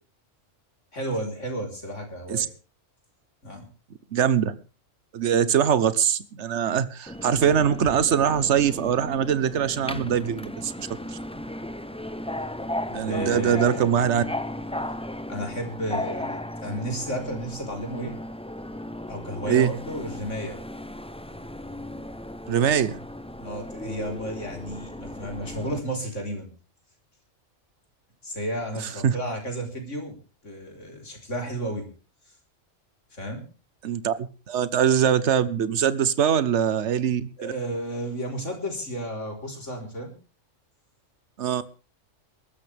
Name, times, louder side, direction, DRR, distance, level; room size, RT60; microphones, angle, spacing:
voice 1, 0.9-2.5 3.4-3.6 13.0-14.2 15.3-18.2 19.1-20.6 23.4-26.5 28.2-30.2 30.4-31.9 33.1-33.4 37.4-40.1, right 1 dB, 70° left, 2 dB, 4.5 m, -32 dB
voice 2, 4.1-4.6 5.1-10.9 12.9-14.2 19.5-19.7 22.5-23.0 28.8-29.1 33.8-37.5 41.4-41.6, right 8 dB, 65° right, 15 dB, 1.3 m, -23 dB
Subway metro underground, 7.1-25.8, left 1 dB, 5° left, 0.5 m, -36 dB
22.0 x 13.0 x 3.5 m, 0.35 s
omnidirectional pair, 1.3 m